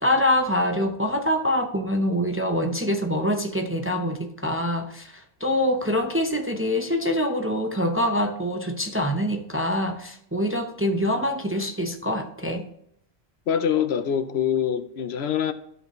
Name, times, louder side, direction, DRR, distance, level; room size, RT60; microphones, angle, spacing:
voice 1, 0.0-12.7, left 1 dB, 15° right, 0.5 m, -25 dB
voice 2, 13.5-15.5, left 8 dB, 80° left, 0.9 m, -24 dB
12.5 x 5.6 x 3.0 m
omnidirectional pair, 1.1 m